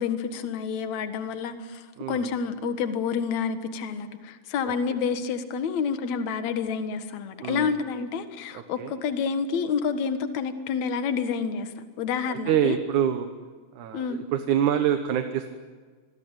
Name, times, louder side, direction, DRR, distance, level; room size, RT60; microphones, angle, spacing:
voice 1, 0.0-11.7 12.0-12.8 13.9-14.2, left 6 dB, 60° left, 9 dB, 2.6 m, -29 dB
voice 2, 8.5-8.9 12.3-13.3 13.8-15.5, right 9 dB, 70° right, 7 dB, 2.5 m, -26 dB
27.0 x 22.0 x 9.0 m, 1.5 s
omnidirectional pair, 3.8 m